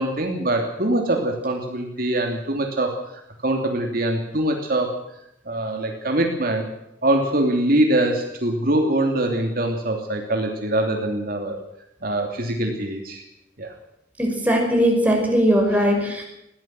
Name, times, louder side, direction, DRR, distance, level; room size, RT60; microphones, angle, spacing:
voice 1, 0.0-2.9 3.4-5.0 5.5-6.7 7.0-11.6 12.0-13.2 13.6-13.7, right 1 dB, 55° right, 3 dB, 2.9 m, -23 dB
voice 2, 14.2-16.2, equal, 10° right, 1 dB, 5.7 m, -19 dB
21.0 x 16.5 x 7.7 m, 0.82 s
head